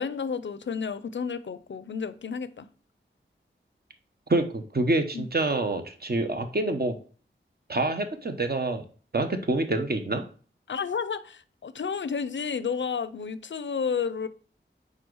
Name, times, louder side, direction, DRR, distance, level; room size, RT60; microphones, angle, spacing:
voice 1, 0.0-2.7 5.1-5.3 10.7-14.3, left 6 dB, 65° left, 0.5 m, -31 dB
voice 2, 4.3-6.9 7.7-8.9 9.1-10.2, right 2 dB, 50° right, 1.0 m, -26 dB
4.8 x 4.5 x 4.7 m
wide cardioid pair, 65°, 20 cm